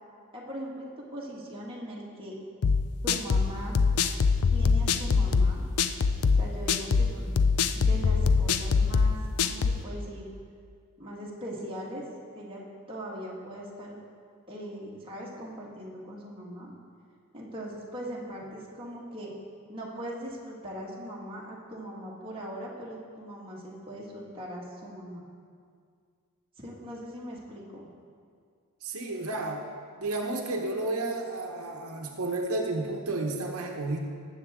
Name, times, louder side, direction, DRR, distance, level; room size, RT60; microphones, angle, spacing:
voice 1, 0.3-2.4 3.0-3.8 4.5-5.6 6.4-7.3 7.7-10.3 11.0-12.1 12.4-14.0 14.5-16.7 17.3-19.3 19.7-25.2 26.6-27.9, equal, 25° right, -5 dB, 1.8 m, -40 dB
sound 1, 2.6-9.8, left 5 dB, 85° left, 0.5 m, -24 dB
voice 2, 28.8-29.7 30.0-34.0, right 2 dB, 80° right, 1 dB, 1.0 m, -31 dB
19.0 x 7.7 x 3.7 m, 2.2 s
head